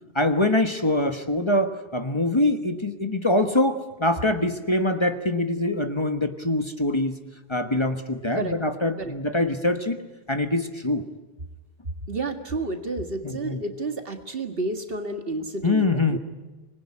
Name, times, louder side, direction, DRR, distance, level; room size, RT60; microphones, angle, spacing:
voice 1, 0.1-7.2 7.5-10.0 10.3-11.0 13.2-13.6 15.6-16.2, left 2 dB, 30° left, 8 dB, 1.3 m, -24 dB
voice 2, 12.1-16.2, right 2 dB, 65° right, 6 dB, 2.1 m, -30 dB
25.5 x 20.5 x 9.8 m, 1.2 s
omnidirectional pair, 1.0 m